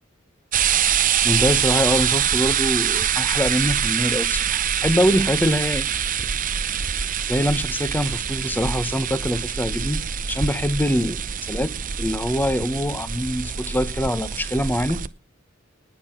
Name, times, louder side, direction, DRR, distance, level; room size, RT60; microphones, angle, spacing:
sound 1, 0.5-15.1, right 8 dB, 40° right, 0.8 m, -24 dB
voice 1, 0.9-5.9 7.3-10.0 10.3-11.2 11.5-11.7 12.0-15.0, equal, 10° left, 1.3 m, -24 dB
19.5 x 8.5 x 6.0 m
head